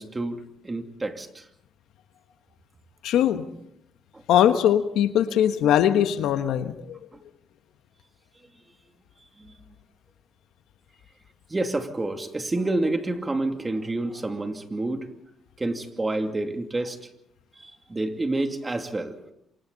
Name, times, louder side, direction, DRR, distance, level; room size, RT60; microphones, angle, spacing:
voice 1, 0.0-1.5 4.1-4.2 7.1-7.2 9.4-9.6 11.5-15.1 15.6-17.1 17.5-19.2, right 2 dB, 20° right, 5 dB, 2.6 m, -29 dB
voice 2, 3.0-3.4 4.3-7.0, left 10 dB, 85° left, 9 dB, 1.3 m, -21 dB
27.5 x 24.5 x 4.1 m, 0.77 s
cardioid pair, 90°, 0 cm